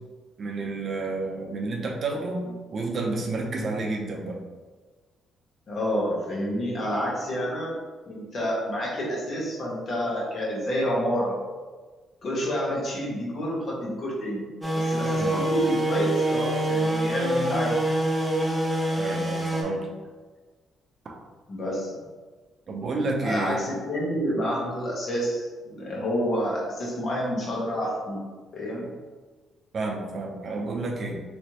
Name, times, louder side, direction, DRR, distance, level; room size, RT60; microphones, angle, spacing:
voice 1, 0.4-4.4 15.2-15.4 19.0-19.9 21.0-21.1 22.7-23.6 29.7-31.2, right 3 dB, 50° right, 0 dB, 0.6 m, -30 dB
voice 2, 5.7-7.8 8.1-11.4 12.2-17.8 21.5-21.9 23.2-28.2 28.5-28.9 30.5-30.7, equal, 50° left, -4 dB, 1.1 m, -29 dB
sound 1, 14.6-19.6, right 1 dB, 10° right, 0.8 m, -25 dB
3.2 x 3.2 x 2.8 m, 1.3 s
cardioid pair, 90°, 0 cm